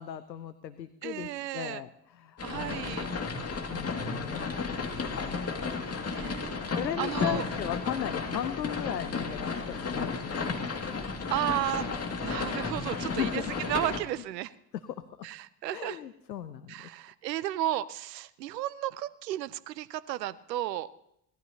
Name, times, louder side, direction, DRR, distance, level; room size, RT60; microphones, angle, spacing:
voice 1, 0.0-3.1 3.7-5.5 5.9-6.0 6.8-10.7 12.9-13.4 14.9-15.0 15.7-16.9, left 10 dB, 90° left, 13 dB, 0.6 m, -37 dB
voice 2, 1.0-1.8 2.4-3.1 6.1-7.4 11.3-14.5 15.2-16.0 16.7-20.9, right 14 dB, 75° right, 18 dB, 0.7 m, -34 dB
sound 1, 2.4-14.0, left 4 dB, 30° left, 2.3 m, -33 dB
25.0 x 18.0 x 2.9 m, 0.77 s
figure-of-eight pair, 55°, 49 cm